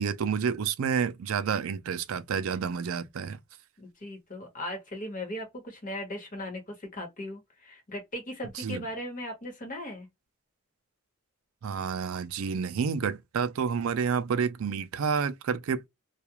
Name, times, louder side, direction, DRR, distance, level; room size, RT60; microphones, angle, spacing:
voice 1, 0.0-3.4 8.5-8.8 11.6-15.9, right 6 dB, 70° right, 0.4 m, -29 dB
voice 2, 3.8-10.1, left 1 dB, 40° left, 1.2 m, -38 dB
2.3 x 2.3 x 2.9 m
head